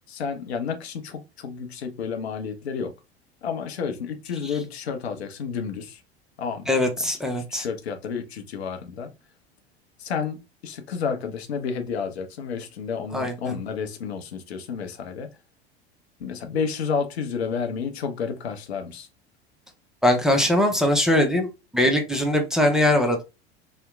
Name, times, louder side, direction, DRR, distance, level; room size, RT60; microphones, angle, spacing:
voice 1, 0.1-2.9 3.4-6.0 6.4-6.7 7.3-9.1 10.0-15.3 16.2-19.1, left 6 dB, 75° left, 0.6 m, -31 dB
voice 2, 6.7-7.7 13.1-13.5 20.0-21.5 21.7-23.2, left 1 dB, ahead, 0.5 m, -21 dB
2.8 x 2.1 x 2.3 m
figure-of-eight pair, 80°, 33 cm